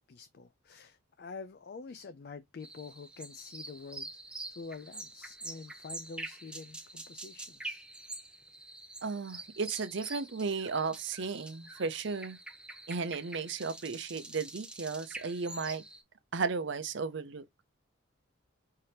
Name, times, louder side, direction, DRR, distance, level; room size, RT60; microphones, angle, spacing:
voice 1, 0.1-4.2 4.5-7.8, left 4 dB, 50° left, 0.4 m, -47 dB
sound 1, 2.6-16.0, right 2 dB, 5° right, 0.6 m, -46 dB
voice 2, 9.0-12.4 12.9-15.8 16.3-17.4, right 4 dB, 60° right, 0.6 m, -34 dB
5.6 x 2.8 x 3.2 m
head